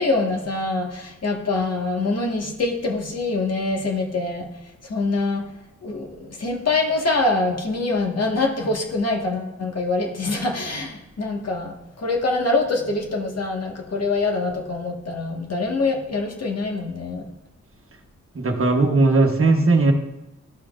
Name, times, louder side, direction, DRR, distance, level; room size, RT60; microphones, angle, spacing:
voice 1, 0.0-4.5 4.9-5.4 5.8-11.7 12.0-17.2, left 3 dB, 55° left, 0 dB, 1.6 m, -24 dB
voice 2, 18.3-19.9, right 3 dB, 45° right, 4 dB, 1.1 m, -17 dB
13.0 x 5.9 x 2.5 m, 0.93 s
cardioid pair, 75°, 30 cm